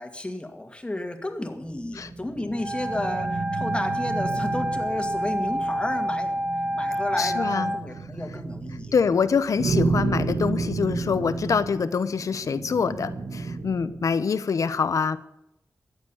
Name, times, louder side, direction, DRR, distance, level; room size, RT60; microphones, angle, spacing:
voice 1, 0.0-8.9, left 1 dB, 20° left, 6 dB, 2.2 m, -32 dB
sound 1, 1.6-14.2, right 3 dB, 85° right, 1.6 m, -32 dB
Wind instrument woodwind instrument, 2.5-7.8, equal, 20° right, 1.3 m, -28 dB
voice 2, 7.2-7.7 8.9-15.2, left 5 dB, 80° left, 14 dB, 0.9 m, -25 dB
14.5 x 8.2 x 9.8 m, 0.86 s
wide cardioid pair, 70°, 6 cm